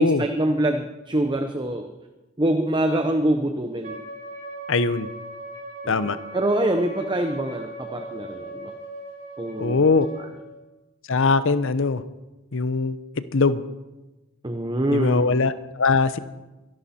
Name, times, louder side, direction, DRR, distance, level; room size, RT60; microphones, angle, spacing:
voice 1, 0.0-1.9 2.4-4.0 5.8-8.7 9.4-9.8 14.4-15.3, right 1 dB, 20° right, 5 dB, 0.9 m, -25 dB
Wind instrument woodwind instrument, 3.8-10.4, right 1 dB, 40° right, 3.4 m, -38 dB
voice 2, 4.7-5.1 5.9-6.2 9.6-10.1 11.1-12.0 12.5-13.0 13.3-13.6 14.9-16.2, left 4 dB, 65° left, 14 dB, 0.8 m, -21 dB
24.5 x 11.5 x 4.3 m, 1.1 s
head